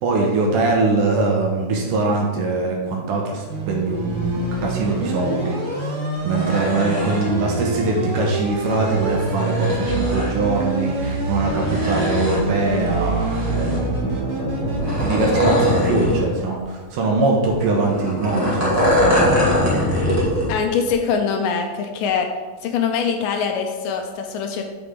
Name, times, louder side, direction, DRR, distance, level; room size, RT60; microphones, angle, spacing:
voice 1, 0.0-6.0 6.2-13.7 14.0-14.2 15.0-19.4, right 3 dB, 70° right, 0 dB, 2.3 m, -22 dB
sound 1, 3.5-15.3, right 2 dB, 90° right, 3.3 m, -25 dB
sound 2, 6.1-7.3 8.5-10.3 11.4-12.6 13.1-14.0 14.7-16.3 16.6-16.7 17.4-20.5 20.9-21.0, equal, 25° right, 0.3 m, -22 dB
voice 2, 20.5-22.3 22.6-24.6, left 6 dB, 80° left, 4 dB, 2.2 m, -23 dB
6.9 x 6.7 x 3.7 m, 1.3 s
omnidirectional pair, 4.2 m